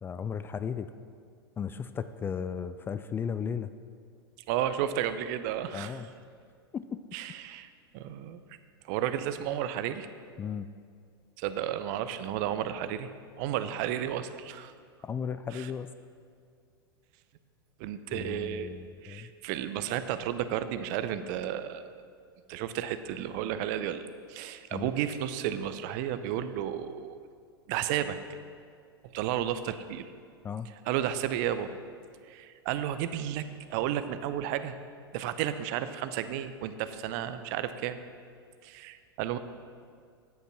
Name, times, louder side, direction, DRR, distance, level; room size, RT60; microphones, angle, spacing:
voice 1, 0.0-0.9 1.6-3.7 5.7-6.1 6.7-7.0 10.4-10.7 15.0-15.9 18.1-19.3 24.7-24.9 30.4-30.7, left 7 dB, 15° left, 11 dB, 0.3 m, -35 dB
voice 2, 4.5-6.0 7.1-7.7 7.9-8.4 8.8-10.1 11.4-13.1 13.4-14.7 15.5-15.7 17.8-18.8 19.0-22.0 22.5-27.2 27.7-28.2 29.1-30.1 30.9-31.7 32.3-34.7 35.1-38.0 38.6-39.4, right 10 dB, 45° right, 12 dB, 0.6 m, -32 dB
9.4 x 8.0 x 6.0 m, 2.2 s
figure-of-eight pair, 90°, 13 cm